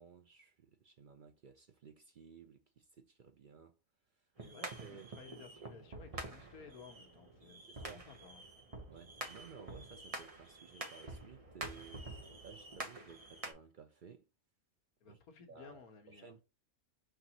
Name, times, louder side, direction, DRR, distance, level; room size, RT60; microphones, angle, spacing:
voice 1, 0.0-3.8 4.1-4.3 4.6-5.1 7.7-8.1 8.9-14.3 15.1-15.2 15.5-15.8 16.1-16.4, right 6 dB, 60° right, 0.5 m, -56 dB
voice 2, 4.4-8.5 15.0-16.4, left 5 dB, 75° left, 1.5 m, -56 dB
sound 1, 4.4-13.5, right 2 dB, 30° right, 0.8 m, -47 dB
5.9 x 3.0 x 2.8 m
omnidirectional pair, 1.6 m